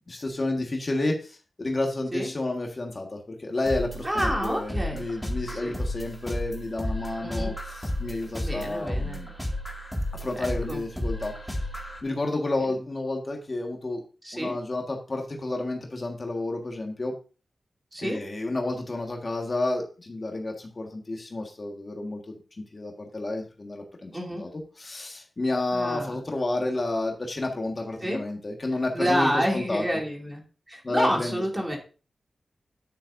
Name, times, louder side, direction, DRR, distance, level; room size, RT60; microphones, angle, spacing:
voice 1, 0.1-7.5 7.8-9.3 10.1-11.3 12.0-14.0 14.3-17.1 18.0-24.1 24.4-24.5 24.8-29.8 30.8-31.8, left 2 dB, 35° left, 2 dB, 1.5 m, -30 dB
sound 1, 3.7-12.0, left 1 dB, 5° left, 2.0 m, -33 dB
voice 2, 4.0-5.0 5.5-5.8 7.2-7.5 8.4-9.2 10.4-10.8 12.6-12.7 14.2-14.5 17.9-18.2 24.1-24.4 25.7-26.2 28.0-28.2 28.9-30.4 30.7-31.8, equal, 15° right, 0 dB, 2.5 m, -28 dB
9.6 x 8.6 x 2.6 m, 0.35 s
wide cardioid pair, 120°, 0 cm